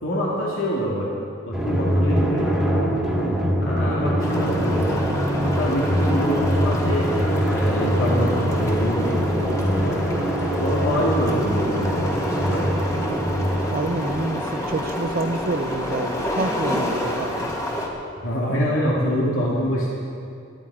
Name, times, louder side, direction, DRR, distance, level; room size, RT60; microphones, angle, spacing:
voice 1, 0.0-1.1 1.4-2.5 3.6-5.0 5.4-10.0 10.6-12.7 18.2-19.9, equal, 75° left, -5 dB, 2.6 m, -25 dB
Drum, 1.5-14.6, equal, ahead, 2.2 m, -23 dB
sound 1, 4.2-17.9, left 1 dB, 15° left, 1.8 m, -29 dB
voice 2, 13.7-17.5, right 3 dB, 45° right, 11 dB, 0.6 m, -28 dB
19.0 x 13.0 x 4.9 m, 2.5 s
head